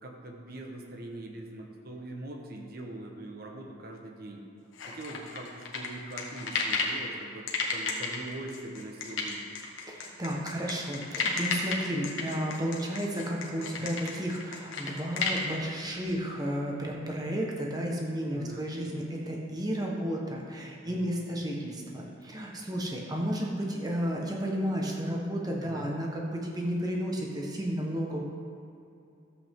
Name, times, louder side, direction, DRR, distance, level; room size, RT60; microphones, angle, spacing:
voice 1, 0.0-4.4 4.9-9.4 13.7-13.9 18.3-18.7 20.8-21.1 25.6-25.9, right 1 dB, 50° right, 1 dB, 1.2 m, -42 dB
sound 1, 4.8-7.0 7.5-15.4, left 5 dB, 85° left, 1.5 m, -32 dB
voice 2, 9.8-28.2, equal, 20° right, -1 dB, 1.2 m, -32 dB
13.0 x 8.0 x 3.7 m, 2.6 s
head